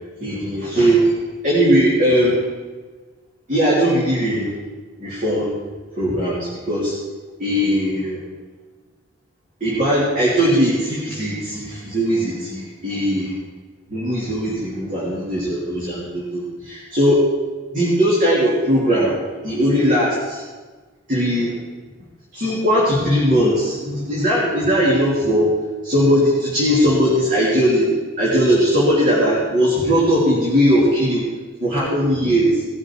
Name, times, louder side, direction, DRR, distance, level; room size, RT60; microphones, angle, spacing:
voice 1, 0.2-1.1 1.4-2.4 3.5-4.5 5.0-5.5 6.0-6.9 7.4-8.2 9.6-13.3 13.9-17.2 17.7-19.2 19.4-20.4 21.1-21.5 22.3-25.5 25.8-27.9 28.2-31.2 31.6-32.6, equal, 40° right, -8 dB, 3.2 m, -19 dB
19.0 x 7.6 x 4.7 m, 1.3 s
head